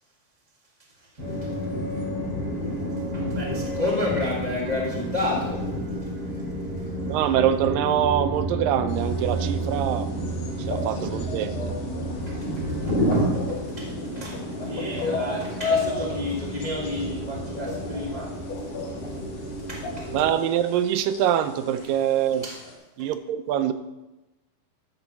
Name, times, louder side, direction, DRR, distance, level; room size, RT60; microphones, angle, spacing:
sound 1, 1.2-20.3, right 1 dB, 40° right, 4.2 m, -30 dB
voice 1, 3.1-5.6 10.9-11.1 12.3-12.6 13.5-18.4 19.7-20.1 22.4-22.6 23.0-23.1, left 1 dB, 20° left, -4 dB, 1.1 m, -31 dB
voice 2, 7.1-10.1 10.6-11.7 20.1-22.5 23.0-23.7, right 10 dB, 85° right, 11 dB, 2.3 m, -24 dB
sound 2, 8.9-22.7, left 4 dB, 65° left, 2.9 m, -35 dB
13.0 x 4.5 x 7.0 m, 1.0 s
omnidirectional pair, 3.9 m